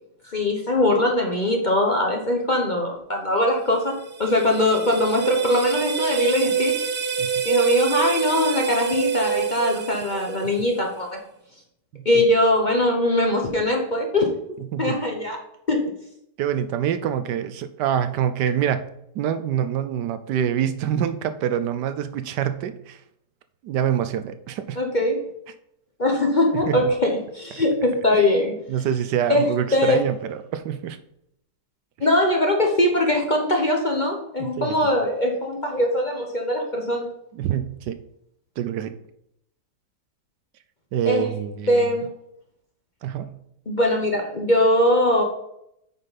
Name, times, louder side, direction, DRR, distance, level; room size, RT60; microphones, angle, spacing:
voice 1, 0.2-6.9 7.4-11.2 12.0-14.4 14.8-15.4 15.7-15.9 24.8-25.2 26.0-28.5 29.3-30.0 32.0-37.1 41.0-41.3 41.7-42.1 43.7-45.2, left 1 dB, 35° left, 1 dB, 0.9 m, -21 dB
sound 1, 3.8-10.8, right 7 dB, 50° right, 0.6 m, -26 dB
voice 2, 11.9-12.2 14.7-15.0 16.4-18.9 19.1-23.0 23.6-24.8 26.7-26.9 28.7-31.0 32.0-32.1 34.4-34.8 37.3-38.0 38.6-38.9 40.9-41.9 43.0-43.3, right 9 dB, 75° right, 11 dB, 1.3 m, -26 dB
8.9 x 5.5 x 4.1 m, 0.76 s
omnidirectional pair, 1.9 m